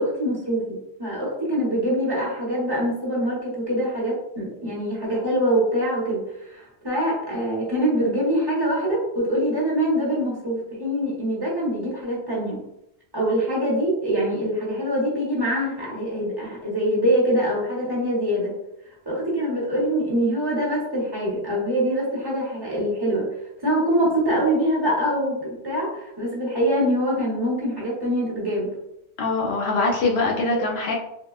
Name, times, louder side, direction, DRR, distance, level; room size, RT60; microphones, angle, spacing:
voice 1, 0.0-6.2 6.5-12.6 13.1-18.5 19.1-23.3 23.6-28.7 30.5-30.6, equal, 25° right, -5 dB, 0.8 m, -24 dB
voice 2, 29.2-30.9, left 3 dB, 70° left, -1 dB, 0.8 m, -23 dB
3.5 x 2.2 x 2.3 m, 0.85 s
omnidirectional pair, 1.1 m